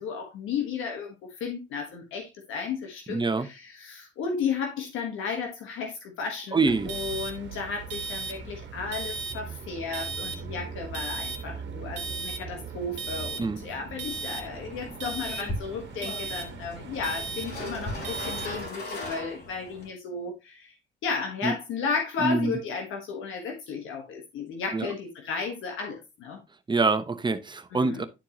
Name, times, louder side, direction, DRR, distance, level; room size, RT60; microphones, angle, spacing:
voice 1, 0.0-20.8 21.0-26.4 27.7-28.0, left 5 dB, 85° left, 1.4 m, -34 dB
voice 2, 3.1-3.5 6.5-6.9 13.4-13.6 21.4-21.5 22.2-22.6 24.7-24.9 26.7-28.1, right 3 dB, 25° right, 0.9 m, -25 dB
sound 1, 6.6-18.7, right 4 dB, 65° right, 1.5 m, -37 dB
sound 2, 14.1-19.9, left 1 dB, 55° left, 4.4 m, -39 dB
11.5 x 4.4 x 2.9 m
cardioid pair, 90°, 20 cm